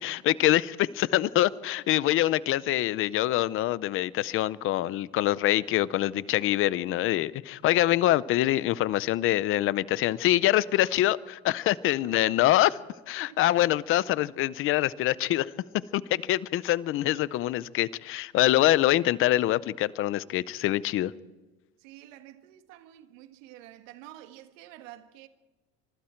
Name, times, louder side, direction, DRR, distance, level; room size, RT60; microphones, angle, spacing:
voice 1, 0.0-12.8 13.1-21.1, left 14 dB, 35° left, 0.6 m, -25 dB
voice 2, 21.8-25.3, right 13 dB, 85° right, 1.7 m, -48 dB
25.5 x 23.5 x 4.5 m
cardioid pair, 160°, 38 cm